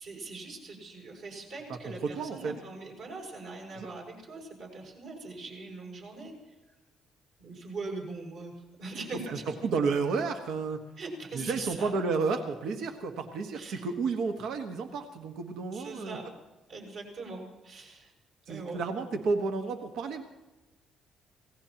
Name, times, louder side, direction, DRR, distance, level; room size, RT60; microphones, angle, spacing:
voice 1, 0.0-6.3 7.4-8.5 8.8-9.4 11.0-11.9 13.5-13.8 15.7-16.2 16.7-18.1 18.5-18.8, right 3 dB, 55° right, 0 dB, 6.2 m, -41 dB
voice 2, 1.7-2.5 3.7-3.9 9.3-10.8 11.3-16.2 18.5-20.2, right 4 dB, 75° right, 5 dB, 1.5 m, -31 dB
26.0 x 18.0 x 3.0 m, 1.1 s
cardioid pair, 160°, 0 cm